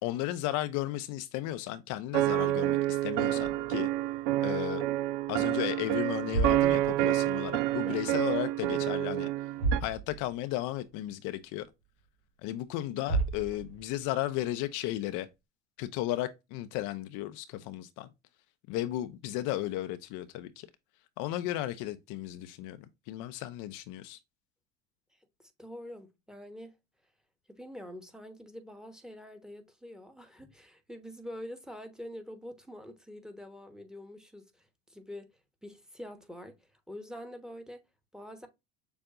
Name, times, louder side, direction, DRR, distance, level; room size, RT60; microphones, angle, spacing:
voice 1, 0.0-3.9 4.4-4.8 5.3-9.3 9.8-11.7 12.4-15.3 15.8-18.1 18.7-20.7 21.2-22.8 23.1-24.2, left 14 dB, 60° left, 0.6 m, -34 dB
sound 1, 2.1-9.8, right 15 dB, 65° right, 0.5 m, -28 dB
sound 2, 3.3-5.0 5.3-5.6 6.1-7.9 8.2-8.9 9.2-9.3 9.5-10.5 10.9-11.0 11.6-11.7 12.7-12.8 13.0-14.1, right 4 dB, 85° right, 1.5 m, -34 dB
voice 2, 25.4-26.8 27.5-37.8 38.1-38.5, equal, ahead, 1.2 m, -46 dB
6.9 x 2.6 x 2.5 m
supercardioid pair, 95°, 35 cm